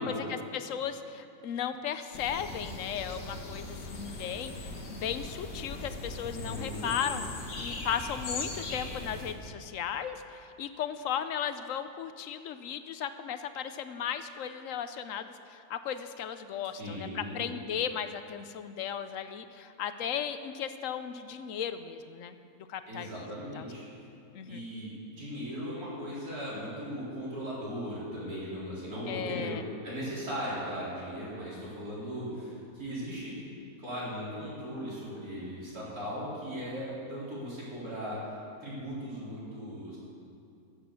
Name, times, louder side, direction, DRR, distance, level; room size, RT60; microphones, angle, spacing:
voice 1, 0.0-7.3 7.6-23.3 23.5-23.6 24.3-24.6 29.1-29.6, left 8 dB, 65° left, 10 dB, 1.0 m, -36 dB
sound 1, 2.1-9.3, left 2 dB, 90° left, 2.1 m, -39 dB
voice 2, 6.3-7.1 16.7-17.5 22.9-23.8 24.5-33.3 33.8-38.3 38.6-40.0, equal, 65° right, -8 dB, 4.8 m, -38 dB
15.0 x 8.7 x 6.9 m, 2.5 s
omnidirectional pair, 1.7 m